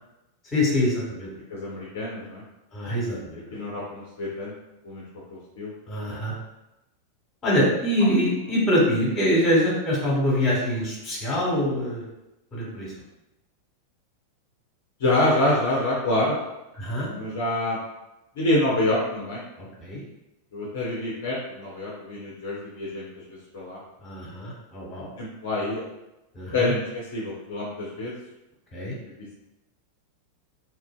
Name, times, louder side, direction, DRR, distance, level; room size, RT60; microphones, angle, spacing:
voice 1, 0.5-1.3 2.7-3.4 5.9-6.3 7.4-12.0 12.5-12.9 16.8-17.1 19.6-20.0 24.0-25.1 26.3-26.7 28.7-28.9, equal, 25° left, -4 dB, 1.2 m, -24 dB
voice 2, 1.5-2.4 3.5-4.5 4.8-5.0 5.3-5.7 15.0-16.3 17.1-17.8 18.4-19.4 20.5-23.8 25.2-25.8 26.5-28.1, left 1 dB, 55° left, -5 dB, 0.6 m, -26 dB
2.9 x 2.5 x 2.2 m, 0.95 s
figure-of-eight pair, 90°, 0 cm